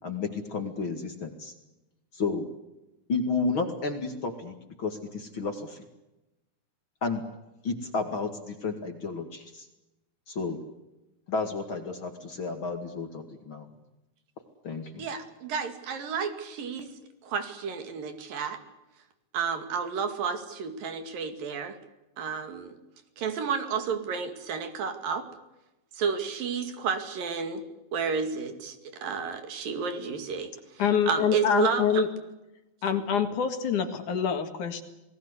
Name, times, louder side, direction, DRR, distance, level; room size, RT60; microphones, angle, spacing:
voice 1, 0.0-1.5 2.1-2.5 3.1-5.9 7.0-7.2 7.6-9.7 10.3-10.6 11.3-13.7 14.6-15.1, left 4 dB, 40° left, 6 dB, 2.4 m, -32 dB
voice 2, 15.0-16.9 17.2-18.6 19.3-21.8 22.2-22.8 23.2-25.3 25.9-27.6 27.9-32.0, right 6 dB, 70° right, 8 dB, 4.0 m, -31 dB
voice 3, 30.8-32.1 32.8-34.8, left 8 dB, 60° left, 8 dB, 3.2 m, -26 dB
29.0 x 19.5 x 8.2 m, 0.98 s
omnidirectional pair, 4.2 m